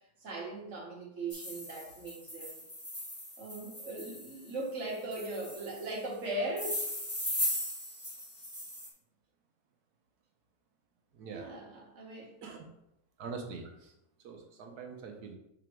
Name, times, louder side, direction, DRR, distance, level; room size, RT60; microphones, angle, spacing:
voice 1, 0.2-2.6 3.4-6.8 11.3-12.4, right 2 dB, 45° right, -3 dB, 1.7 m, -39 dB
sound 1, 1.3-4.5 5.1-5.9 6.6-8.9, equal, 10° left, 1.5 m, -38 dB
voice 2, 11.1-11.5 12.4-12.7 13.2-13.9 14.2-15.4, right 5 dB, 70° right, 3 dB, 1.2 m, -43 dB
5.8 x 3.7 x 4.5 m, 0.83 s
omnidirectional pair, 1.8 m